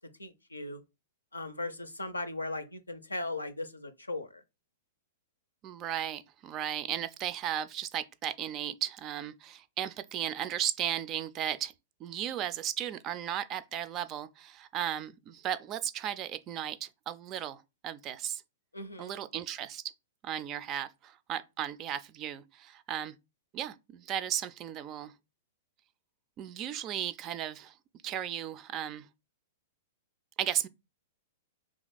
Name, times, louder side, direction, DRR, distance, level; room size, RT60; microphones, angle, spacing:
voice 1, 0.2-0.8 1.3-4.4 18.7-19.2, left 2 dB, 90° left, 0.5 m, -38 dB
voice 2, 5.6-11.7 12.0-18.4 19.0-19.8 20.2-23.2 23.5-25.1 26.4-27.8 28.0-29.1 30.4-30.7, right 10 dB, 35° right, 0.3 m, -35 dB
2.8 x 2.4 x 3.9 m
figure-of-eight pair, 105°, 0 cm